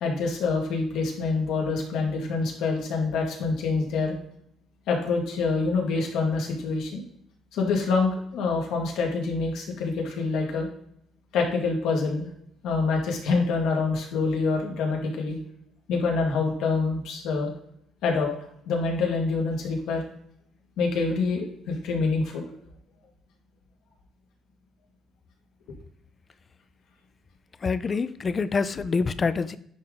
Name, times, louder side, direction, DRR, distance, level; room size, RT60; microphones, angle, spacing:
voice 1, 0.0-4.2 4.9-7.0 7.5-10.7 11.3-12.3 12.6-15.4 15.9-17.5 18.0-18.3 18.7-20.0 20.8-22.5, left 4 dB, 70° left, 0 dB, 1.8 m, -26 dB
voice 2, 27.6-29.6, left 4 dB, 25° left, 15 dB, 0.3 m, -26 dB
10.0 x 3.7 x 3.8 m, 0.68 s
cardioid pair, 165°, 0 cm